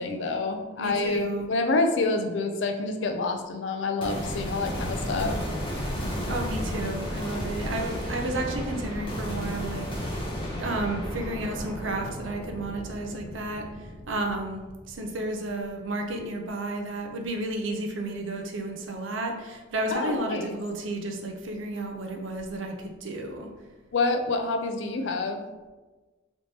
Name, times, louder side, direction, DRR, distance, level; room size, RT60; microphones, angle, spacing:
voice 1, 0.0-5.4 19.9-20.6 23.9-25.4, left 3 dB, 70° left, 5 dB, 0.4 m, -27 dB
voice 2, 0.8-1.5 6.3-10.2 10.6-23.5, right 2 dB, 80° right, 3 dB, 0.5 m, -32 dB
sound 1, 4.0-15.4, equal, 25° left, 0.8 m, -33 dB
3.3 x 2.9 x 2.8 m, 1.2 s
head